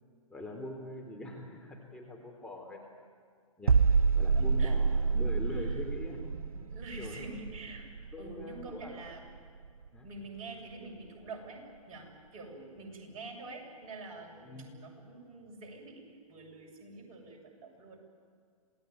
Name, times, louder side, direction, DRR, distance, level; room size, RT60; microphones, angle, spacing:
voice 1, 0.3-2.8 3.6-3.8 4.1-6.6 7.0-7.3 8.1-9.0 9.9-10.1 14.4-14.8, left 1 dB, 5° left, -1 dB, 3.6 m, -43 dB
sound 1, 3.7-9.4 9.6-9.9, right 5 dB, 85° right, 0.6 m, -28 dB
voice 2, 4.3-4.8 5.5-5.8 6.7-7.8 8.2-9.2 10.0-18.0, right 3 dB, 35° right, 1 dB, 7.0 m, -46 dB
27.5 x 19.0 x 9.4 m, 2.2 s
hypercardioid pair, 120°, 18 cm